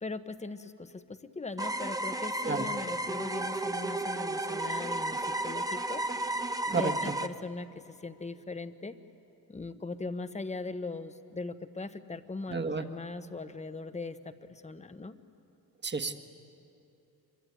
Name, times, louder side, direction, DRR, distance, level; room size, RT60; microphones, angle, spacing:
voice 1, 0.0-6.0 6.7-8.9 9.5-15.2, left 3 dB, 20° left, 11 dB, 1.1 m, -40 dB
sound 1, 1.6-7.3, right 1 dB, 10° right, 0.9 m, -33 dB
voice 2, 12.5-12.9 15.8-16.2, right 4 dB, 30° right, 7 dB, 1.6 m, -31 dB
25.5 x 23.5 x 9.5 m, 2.8 s
cardioid pair, 105°, 38 cm